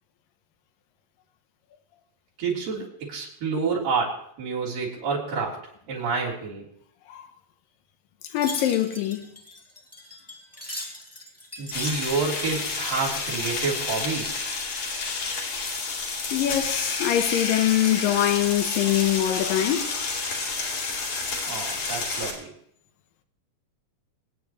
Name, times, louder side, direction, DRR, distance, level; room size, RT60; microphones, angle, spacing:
voice 1, 2.4-5.6 5.9-6.6 11.6-14.3 21.5-22.5, right 4 dB, 75° right, 5.4 m, -28 dB
Wind chime, 8.2-15.3 15.6-16.4 16.8-17.3 17.8-18.7 19.1-19.3, left 1 dB, 5° left, 1.4 m, -42 dB
voice 2, 8.3-9.3 16.3-19.9, left 12 dB, 90° left, 2.7 m, -23 dB
sound 1, 11.7-22.3, left 4 dB, 60° left, 4.0 m, -30 dB
25.0 x 9.8 x 3.1 m
omnidirectional pair, 4.0 m